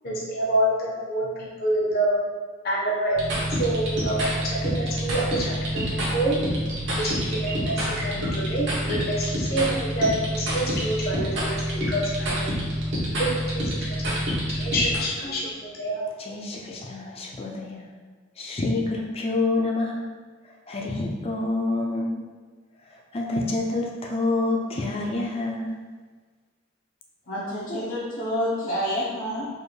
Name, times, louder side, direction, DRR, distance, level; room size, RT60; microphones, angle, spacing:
voice 1, 0.0-2.2 2.6-5.9 6.1-6.4 7.0-9.6 10.0-12.5 13.2-14.1 14.5-15.4 15.8-16.0, right 1 dB, 50° left, -4 dB, 0.8 m, -27 dB
sound 1, 3.2-15.0, equal, 65° right, 1.2 m, -27 dB
voice 2, 16.2-17.9 18.4-20.1 20.7-22.2 23.1-25.8, left 2 dB, 30° left, 0 dB, 0.5 m, -27 dB
voice 3, 27.3-29.5, equal, 90° left, -12 dB, 1.1 m, -28 dB
4.3 x 2.6 x 3.2 m, 1.5 s
head